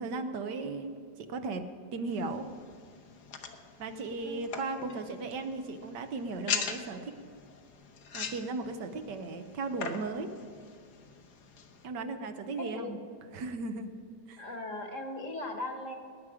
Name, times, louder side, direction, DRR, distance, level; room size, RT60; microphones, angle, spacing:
voice 1, 0.0-1.6 1.9-2.5 3.8-7.1 8.1-10.3 11.8-13.0 13.3-13.9 14.3-14.4, right 3 dB, 75° right, 7 dB, 1.5 m, -36 dB
sound 1, 2.1-11.9, left 6 dB, 65° left, 1.5 m, -42 dB
voice 2, 12.6-13.0 14.4-16.0, left 2 dB, 45° left, 4 dB, 1.6 m, -39 dB
19.5 x 9.9 x 4.9 m, 2.4 s
omnidirectional pair, 1.9 m